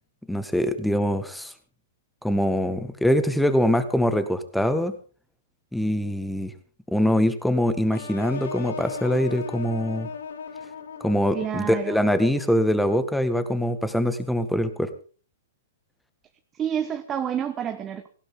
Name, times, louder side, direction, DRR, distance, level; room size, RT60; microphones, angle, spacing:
voice 1, 0.3-1.5 2.2-4.9 5.7-6.5 6.9-10.1 11.0-14.9, equal, ahead, 11 dB, 1.7 m, -23 dB
sound 1, 7.9-12.8, left 5 dB, 75° left, 2.5 m, -37 dB
voice 2, 11.3-12.1 16.5-18.1, right 9 dB, 20° right, 7 dB, 1.2 m, -29 dB
18.5 x 16.5 x 3.9 m, 0.39 s
hypercardioid pair, 135°, 0 cm